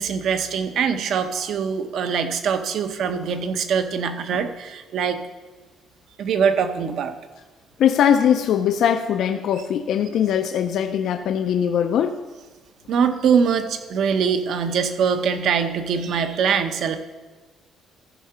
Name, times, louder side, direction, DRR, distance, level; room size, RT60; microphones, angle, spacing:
voice 1, 0.0-5.2 6.2-7.1 12.9-17.0, right 6 dB, 60° right, 9 dB, 0.7 m, -23 dB
voice 2, 7.8-12.2, left 9 dB, 65° left, 7 dB, 0.4 m, -21 dB
14.0 x 4.8 x 5.6 m, 1.3 s
cardioid pair, 150°, 0 cm